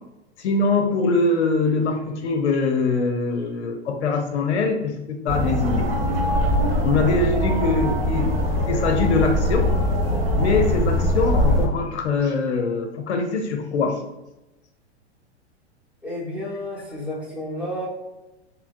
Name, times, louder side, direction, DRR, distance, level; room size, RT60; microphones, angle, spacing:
voice 1, 0.4-5.9 6.8-8.4 8.7-9.7 10.4-14.0, left 3 dB, 75° left, 5 dB, 0.5 m, -23 dB
sound 1, 5.3-11.7, left 1 dB, 55° right, 1.0 m, -22 dB
voice 2, 16.0-17.9, left 1 dB, 5° right, -6 dB, 0.9 m, -31 dB
3.2 x 2.0 x 2.5 m, 0.98 s
figure-of-eight pair, 100°, 34 cm